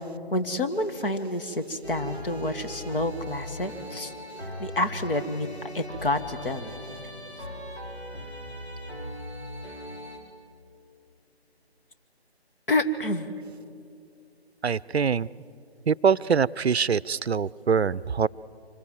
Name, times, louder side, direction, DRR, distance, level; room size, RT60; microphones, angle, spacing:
voice 1, 0.3-4.1 4.6-5.5 5.7-6.8 12.7-13.3, left 1 dB, 55° left, 9 dB, 1.9 m, -28 dB
sound 1, 1.8-10.2, equal, 80° left, 5.0 m, -39 dB
voice 2, 14.6-15.3 15.9-18.3, right 6 dB, 75° right, 21 dB, 0.6 m, -24 dB
25.5 x 21.5 x 7.7 m, 2.5 s
figure-of-eight pair, 155°, 32 cm